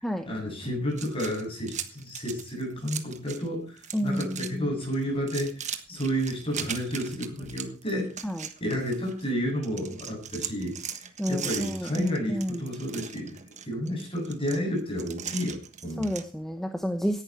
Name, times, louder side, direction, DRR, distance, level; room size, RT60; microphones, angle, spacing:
voice 1, 0.2-8.1 8.6-10.8 11.3-13.4 13.6-16.1, equal, 25° left, 0 dB, 7.7 m, -31 dB
sound 1, 0.9-3.5 3.8-4.5 4.8-9.3 9.6-16.3, right 8 dB, 35° right, 1.4 m, -39 dB
voice 2, 3.9-4.7 8.2-8.4 11.2-12.6 16.0-17.2, equal, ahead, 6 dB, 1.0 m, -30 dB
17.5 x 11.0 x 4.5 m, 0.37 s
head